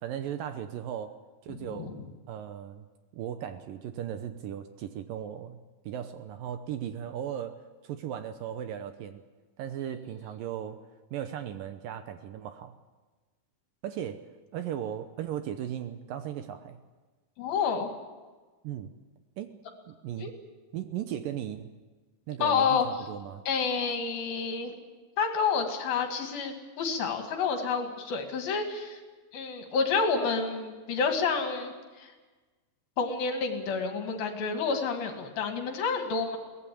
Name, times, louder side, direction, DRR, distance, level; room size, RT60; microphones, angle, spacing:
voice 1, 0.0-1.1 1.4-1.9 2.3-2.9 3.1-5.6 5.9-7.6 7.8-9.2 9.6-10.8 11.1-12.7 13.8-14.2 14.5-16.8 18.6-18.9 19.4-19.5 19.9-20.3 20.7-21.7 22.3-23.4, right 10 dB, 75° right, 9 dB, 2.3 m, -37 dB
voice 2, 1.5-2.0 9.8-10.0 17.4-17.9 20.2-20.3 22.4-22.9 23.5-24.7 25.2-29.0 29.3-32.1 33.0-36.4, left 5 dB, 70° left, 4 dB, 4.0 m, -29 dB
22.5 x 18.0 x 8.6 m, 1.3 s
omnidirectional pair, 4.6 m